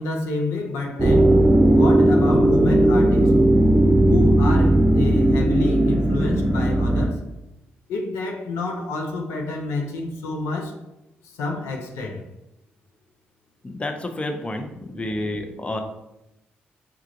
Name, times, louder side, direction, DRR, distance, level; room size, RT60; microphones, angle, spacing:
voice 1, 0.0-1.4 1.7-3.4 4.1-7.2 7.9-10.8 11.4-12.2, left 3 dB, 85° left, 0.5 m, -29 dB
sound 1, 1.0-7.1, right 1 dB, 25° right, 0.7 m, -17 dB
voice 2, 13.6-15.8, left 1 dB, 25° left, 0.7 m, -29 dB
5.1 x 2.4 x 2.9 m
supercardioid pair, 55°, 5 cm